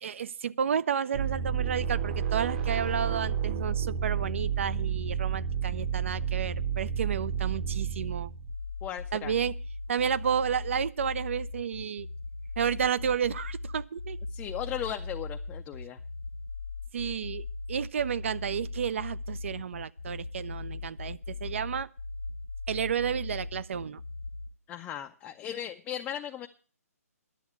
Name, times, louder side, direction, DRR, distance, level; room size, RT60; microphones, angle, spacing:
voice 1, 0.0-8.3 9.1-9.5 9.9-12.1 12.6-14.2 16.9-21.9 22.7-24.0, right 8 dB, 50° right, 0.6 m, -31 dB
sound 1, 1.1-8.6, right 7 dB, 35° right, 1.0 m, -31 dB
sound 2, 8.5-24.5, left 3 dB, 90° left, 1.2 m, -38 dB
voice 2, 8.8-9.3 14.3-16.0 24.7-26.5, left 10 dB, 15° left, 0.5 m, -37 dB
11.0 x 7.8 x 8.1 m
figure-of-eight pair, 135°, 8 cm